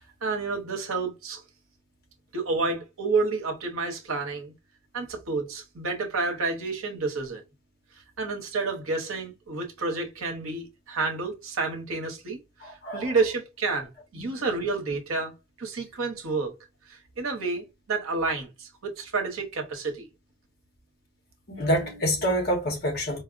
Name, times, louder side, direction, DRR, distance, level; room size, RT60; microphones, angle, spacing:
voice 1, 0.2-1.4 2.3-4.5 4.9-7.4 8.2-15.3 15.6-16.5 16.9-20.1, right 3 dB, 80° right, 0.9 m, -30 dB
voice 2, 12.6-13.2 14.2-14.4 21.5-23.2, equal, 45° left, 1.1 m, -27 dB
4.2 x 2.0 x 2.5 m
head